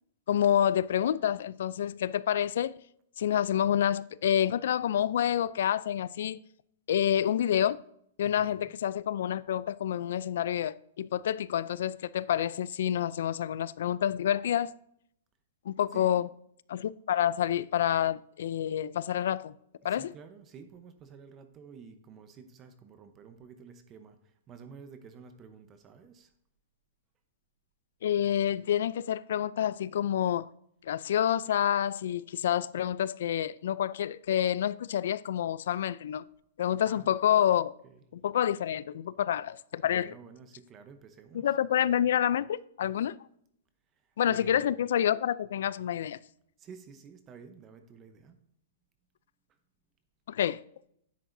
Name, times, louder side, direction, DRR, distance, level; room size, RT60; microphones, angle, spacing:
voice 1, 0.3-2.7 3.2-6.4 6.9-7.8 8.2-14.7 15.7-16.3 16.7-19.5 19.8-20.1 28.0-30.5 30.9-36.2 36.6-37.7 38.2-40.1 41.3-43.2 44.2-46.2 50.3-50.6, left 10 dB, 70° left, 0.4 m, -28 dB
voice 2, 8.2-8.8 15.9-16.3 19.8-26.3 36.8-37.4 37.8-38.0 39.8-41.6 43.9-44.7 46.6-48.4 49.5-49.6, right 6 dB, 25° right, 0.8 m, -51 dB
10.0 x 7.6 x 2.6 m
hypercardioid pair, 155°, 0 cm